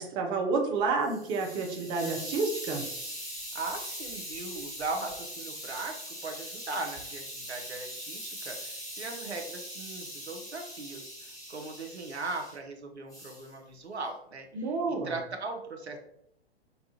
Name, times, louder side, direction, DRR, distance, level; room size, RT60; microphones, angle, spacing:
voice 1, 0.0-2.8 14.5-15.2, right 4 dB, 15° right, 2 dB, 0.4 m, -29 dB
Hiss, 0.8-12.6 13.1-13.5, equal, 10° left, 1.2 m, -41 dB
voice 2, 3.5-16.0, right 3 dB, 80° right, 3 dB, 0.8 m, -39 dB
5.4 x 2.3 x 2.8 m, 0.73 s
figure-of-eight pair, 105°, 32 cm